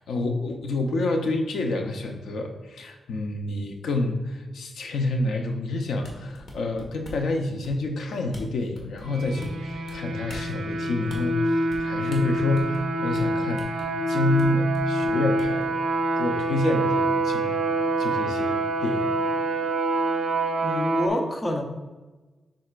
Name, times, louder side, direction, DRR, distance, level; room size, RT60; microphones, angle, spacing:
voice 1, 0.0-15.7 16.2-17.5 18.0-19.2, left 2 dB, 85° left, 4 dB, 0.8 m, -28 dB
sound 1, 6.0-7.3 7.6-8.0 8.3-8.4 8.7-9.9 10.3-10.5 11.1-11.2 11.7-11.8 12.1-12.9 13.1-13.2 13.6-13.9 14.4-14.5 14.7-15.7, left 1 dB, 60° left, 1.5 m, -43 dB
sound 2, 9.0-21.1, right 2 dB, 70° right, 0.6 m, -26 dB
voice 2, 20.6-21.6, left 1 dB, 15° left, 3 dB, 0.7 m, -27 dB
7.6 x 5.6 x 2.5 m, 1.2 s
wide cardioid pair, 160°, 0 cm